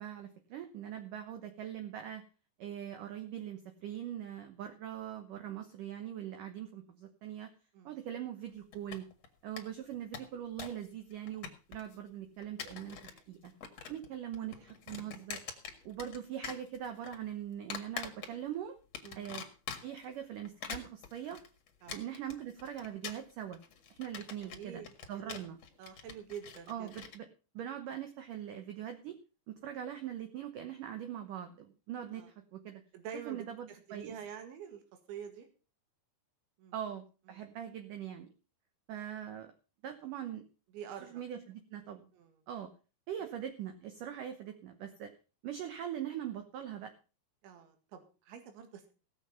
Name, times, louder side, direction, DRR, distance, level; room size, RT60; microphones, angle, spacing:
voice 1, 0.0-2.2 2.6-7.5 7.9-9.1 9.4-13.5 13.9-15.4 15.9-18.8 19.2-19.4 19.8-21.4 21.9-23.6 23.9-24.8 25.1-25.6 26.7-27.3 27.5-29.2 29.5-32.8 33.3-34.1 36.7-38.3 38.9-39.5 39.8-40.5 41.0-42.1 42.5-42.7 43.1-45.1 45.4-46.9, right 10 dB, 70° right, 7 dB, 2.1 m, -42 dB
sound 1, 8.7-9.3 9.6-9.7 9.9-10.9 11.1-12.0 12.4-13.2 13.5-14.1 14.3-16.2 16.4-17.2 17.7-18.6 18.9-20.1 20.5-27.2, left 7 dB, 50° left, 2.2 m, -44 dB
voice 2, 24.4-25.4 25.8-26.9 32.1-32.3 32.9-34.8 35.1-35.5 36.6-36.7 37.3-37.5 40.7-41.2 42.1-42.4 47.4-48.9, right 8 dB, 90° right, 6 dB, 4.2 m, -47 dB
18.0 x 7.3 x 5.6 m, 0.35 s
omnidirectional pair, 5.1 m